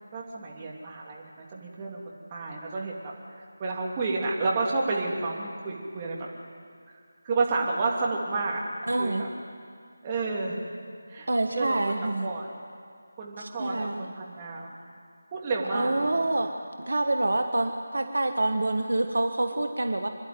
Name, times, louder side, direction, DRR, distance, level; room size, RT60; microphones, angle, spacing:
voice 1, 0.1-2.0 2.3-6.2 7.2-8.6 9.0-9.3 10.0-10.6 11.1-11.3 11.5-11.8 12.2-12.5 13.2-14.7 15.3-16.4, right 3 dB, 20° right, -3 dB, 3.1 m, -30 dB
voice 2, 8.9-9.2 11.3-12.3 13.4-14.1 15.7-16.5 16.8-20.1, right 2 dB, 65° right, 6 dB, 1.4 m, -27 dB
26.0 x 11.5 x 9.5 m, 2.3 s
figure-of-eight pair, 160°, 0 cm